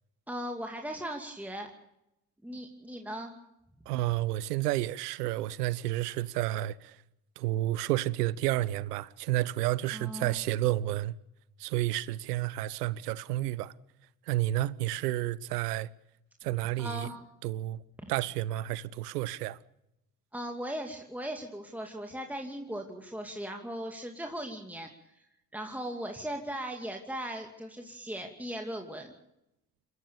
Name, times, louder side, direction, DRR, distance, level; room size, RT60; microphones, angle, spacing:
voice 1, 0.3-1.7 2.4-3.4 9.9-10.4 16.8-17.2 20.3-25.2 25.5-29.1, equal, 5° right, 2.6 m, -38 dB
voice 2, 3.9-7.0 7.4-11.1 11.6-13.7 14.3-15.9 16.4-17.1 17.4-17.8 18.1-19.6, right 15 dB, 75° right, 0.8 m, -30 dB
29.5 x 14.5 x 7.0 m
figure-of-eight pair, 45°, 48 cm